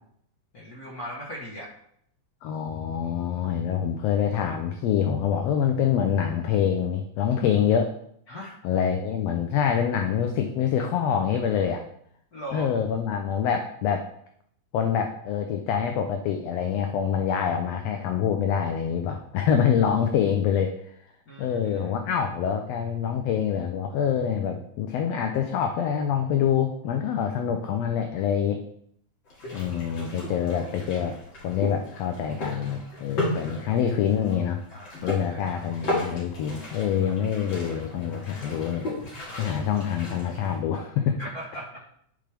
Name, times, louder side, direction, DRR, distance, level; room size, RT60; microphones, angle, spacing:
voice 1, 0.5-1.7 8.3-8.6 12.3-12.7 21.3-21.9 29.4-29.7 33.4-33.5 34.7-35.4 39.3-39.5 41.2-41.8, equal, 60° left, -4 dB, 1.0 m, -39 dB
voice 2, 2.4-7.9 8.6-11.8 12.5-14.1 14.7-20.7 21.4-28.6 29.5-31.2 31.4-34.6 35.0-38.9 39.4-41.2, left 8 dB, 75° left, 5 dB, 1.5 m, -25 dB
sound 1, 29.2-40.6, left 1 dB, 40° left, 2.9 m, -35 dB
10.5 x 5.1 x 3.4 m, 0.70 s
omnidirectional pair, 3.5 m